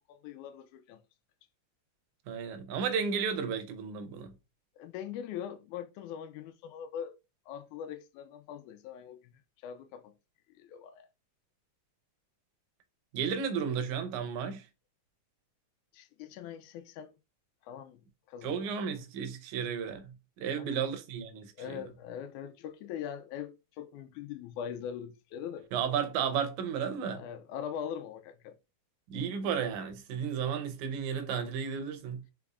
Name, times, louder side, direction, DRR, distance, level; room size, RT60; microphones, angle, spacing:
voice 1, 0.1-1.0 4.8-7.1 7.5-9.3 9.6-10.1 10.5-11.1 15.9-17.1 17.6-18.9 20.6-20.9 21.6-25.7 27.1-28.6, left 9 dB, 85° left, 2.0 m, -42 dB
voice 2, 2.3-4.3 13.1-14.6 18.4-21.8 25.7-27.2 29.1-32.2, right 7 dB, 80° right, 2.1 m, -33 dB
5.3 x 3.5 x 2.4 m
omnidirectional pair, 3.5 m